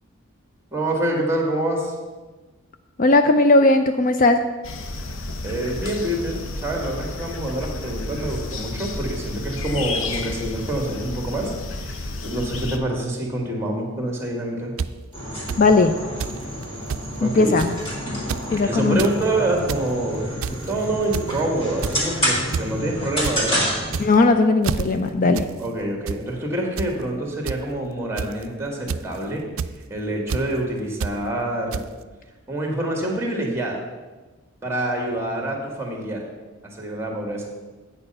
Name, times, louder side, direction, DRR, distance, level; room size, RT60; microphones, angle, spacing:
voice 1, 0.7-1.9 5.4-14.7 17.2-17.6 18.6-23.7 25.6-29.4 29.9-31.9 32.5-33.8 34.6-36.2 36.6-37.5, right 1 dB, 15° right, 1 dB, 1.8 m, -26 dB
voice 2, 3.0-4.4 15.6-16.0 17.2-17.7 18.5-19.0 24.0-25.5, left 2 dB, 40° left, 8 dB, 0.4 m, -17 dB
sound 1, 4.6-12.8, left 2 dB, 75° left, 0.8 m, -31 dB
sound 2, 14.8-14.9 15.5-15.6 16.2-16.4 16.6-16.7 16.9-17.1 17.6-17.8 18.2-18.5 18.8-19.1 19.5-19.9 20.4-20.7 21.1-21.4 21.8-22.1 22.5-22.7 23.0-23.4 23.8-24.3 24.6-24.8 25.3-25.5 25.8-26.2 26.8-26.9 27.5-27.6 28.2-28.4 28.9-29.2 29.6-29.7 30.3-30.4 31.0-31.1 31.7-31.8, right 6 dB, 80° right, 0.4 m, -27 dB
sound 3, 15.1-24.1, equal, 25° left, 2.8 m, -28 dB
8.8 x 6.9 x 5.5 m, 1.2 s
head